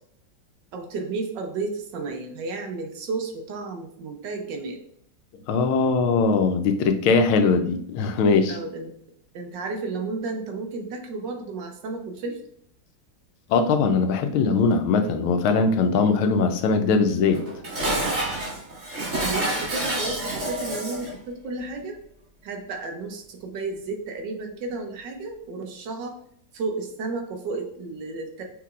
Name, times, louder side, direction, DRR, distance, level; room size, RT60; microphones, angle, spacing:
voice 1, 0.7-4.8 8.5-8.9 9.3-12.4 18.9-22.0 22.4-26.2 26.5-28.4, right 3 dB, 70° right, 4 dB, 1.3 m, -32 dB
voice 2, 5.5-8.6 13.5-17.4, left 4 dB, 85° left, 7 dB, 1.4 m, -21 dB
Dishes pots and pans, 17.3-21.2, right 1 dB, 40° right, 2.3 m, -28 dB
5.9 x 3.7 x 2.4 m, 0.66 s
omnidirectional pair, 2.2 m